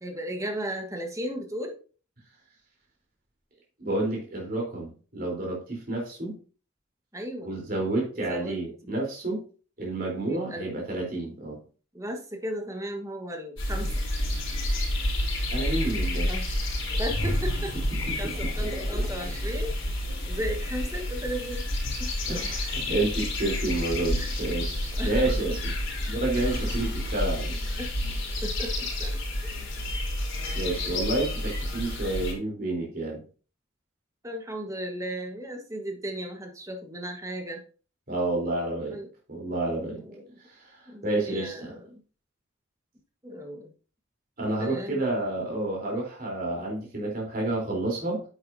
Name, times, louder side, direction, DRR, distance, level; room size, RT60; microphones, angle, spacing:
voice 1, 0.0-1.8 7.1-7.5 8.2-8.6 10.3-10.7 11.9-13.9 16.3-16.5 16.9-17.7 18.2-19.7 20.3-21.7 22.0-22.4 24.1-24.5 25.0-25.6 26.4-27.4 27.8-27.9 28.4-29.2 34.2-37.6 38.9-39.1 40.0-40.3 40.9-42.0 43.2-43.7 44.6-45.0, equal, 15° right, 3 dB, 1.4 m, -35 dB
voice 2, 3.8-6.4 7.4-9.4 9.8-11.6 15.5-16.3 18.1-18.3 22.3-25.7 26.1-27.6 30.5-33.2 38.1-39.0 39.3-40.0 40.5-40.8 41.0-41.7 44.4-48.2, right 2 dB, 45° right, -1 dB, 3.7 m, -30 dB
sound 1, 13.6-32.3, left 1 dB, 65° left, 3.8 m, -29 dB
sound 2, 17.1-20.7 21.1-21.3, equal, ahead, 3.3 m, -38 dB
9.5 x 7.9 x 2.7 m, 0.37 s
head